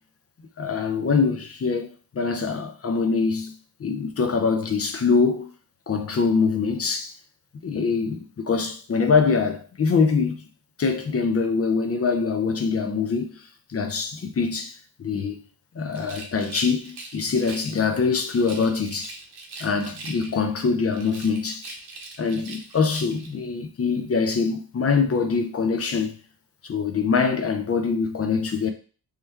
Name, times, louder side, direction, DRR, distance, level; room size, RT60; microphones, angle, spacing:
voice 1, 0.6-3.5 3.8-5.5 5.9-7.1 7.6-10.5 10.8-13.4 13.7-15.4 15.7-19.1 19.6-21.7 22.2-26.1 26.6-28.7, left 5 dB, 35° left, 0.5 m, -24 dB
Rattle, 15.9-17.8 18.3-20.5 20.9-23.3, right 3 dB, 70° right, 0.8 m, -41 dB
3.1 x 2.2 x 3.4 m
wide cardioid pair, 110°, 41 cm